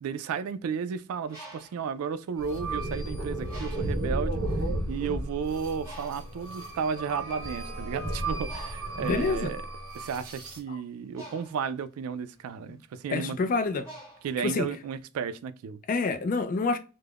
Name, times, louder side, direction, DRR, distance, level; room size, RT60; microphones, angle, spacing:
voice 1, 0.0-4.4 4.9-9.6 9.9-13.4 14.2-15.8, right 6 dB, 90° right, 0.3 m, -33 dB
Bird, 1.1-2.9 3.5-4.2 4.8-5.0 5.2-15.0, right 1 dB, 15° right, 1.0 m, -49 dB
sound 1, 2.4-10.6, right 1 dB, 70° right, 0.9 m, -33 dB
voice 2, 9.0-9.5 10.7-10.8 12.7-12.8 13.1-13.9 14.4-14.7 15.9-16.8, left 3 dB, 40° left, 0.3 m, -27 dB
2.3 x 2.1 x 3.3 m
head